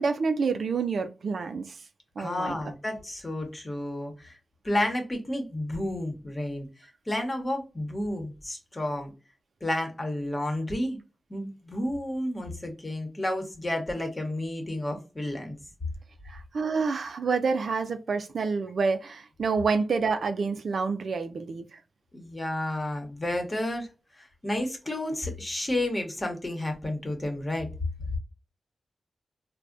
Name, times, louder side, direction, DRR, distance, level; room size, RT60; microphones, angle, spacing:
voice 1, 0.0-1.8 2.2-2.6 16.3-21.8, right 4 dB, 80° right, 0.4 m, -28 dB
voice 2, 2.2-4.4 4.6-9.1 9.6-11.0 11.3-15.6 22.1-23.9 24.2-27.7, left 1 dB, 30° left, 1.0 m, -31 dB
3.3 x 2.2 x 2.5 m
wide cardioid pair, 75°, 0 cm